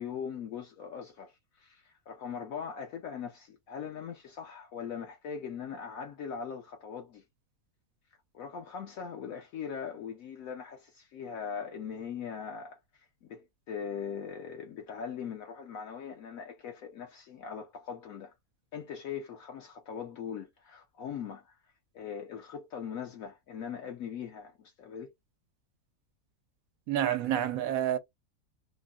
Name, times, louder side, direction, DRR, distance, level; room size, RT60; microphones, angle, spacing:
voice 1, 0.0-7.2 8.3-18.3 18.7-21.6 21.9-25.1, left 7 dB, 70° left, 1.1 m, -40 dB
voice 2, 26.9-28.0, right 11 dB, 70° right, 1.0 m, -28 dB
3.6 x 2.0 x 2.3 m
omnidirectional pair, 1.5 m